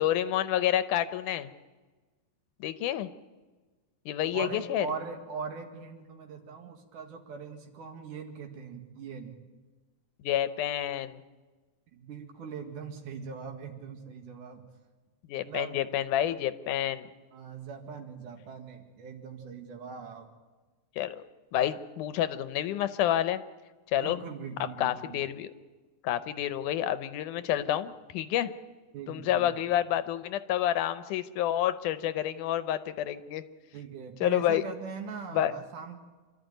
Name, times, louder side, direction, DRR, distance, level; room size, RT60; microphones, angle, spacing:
voice 1, 0.0-1.5 2.6-3.1 4.1-4.9 10.2-11.2 15.3-17.1 21.0-21.2 21.5-23.4 23.9-24.2 24.8-25.5 26.0-28.5 29.1-33.4 34.2-34.6 35.3-35.5, left 11 dB, 80° left, 12 dB, 2.3 m, -29 dB
voice 2, 4.3-9.4 11.9-14.6 15.4-15.8 17.3-20.3 24.0-25.2 28.9-29.7 33.7-36.0, right 5 dB, 75° right, 4 dB, 3.5 m, -41 dB
26.5 x 12.5 x 9.1 m, 1.3 s
omnidirectional pair, 3.6 m